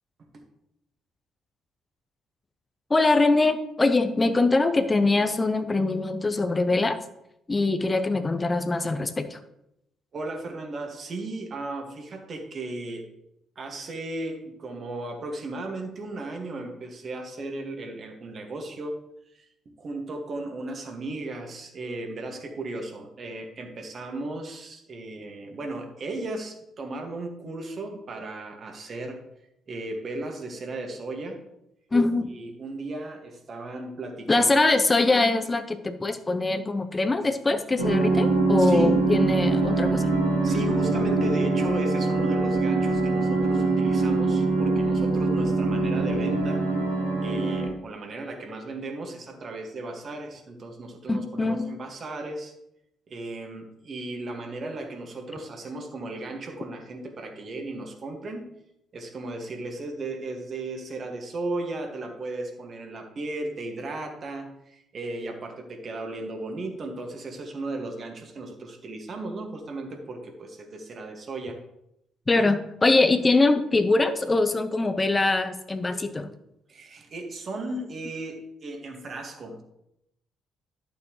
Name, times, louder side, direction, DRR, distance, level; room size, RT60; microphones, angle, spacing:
voice 1, 2.9-7.0 7.5-9.4 31.9-32.3 34.3-40.1 51.1-51.7 72.3-76.3, left 3 dB, 25° left, 9 dB, 0.9 m, -23 dB
voice 2, 10.1-13.0 13.6-19.0 19.3-29.2 29.7-31.4 32.3-34.5 38.6-39.0 40.4-46.7 47.2-52.5 53.1-58.5 58.9-71.6 72.3-72.4 76.7-79.6, right 2 dB, 45° right, 3 dB, 2.1 m, -36 dB
sound 1, 37.8-47.7, right 3 dB, 85° right, 1.8 m, -23 dB
11.5 x 7.1 x 3.2 m, 0.81 s
hypercardioid pair, 45°, 0 cm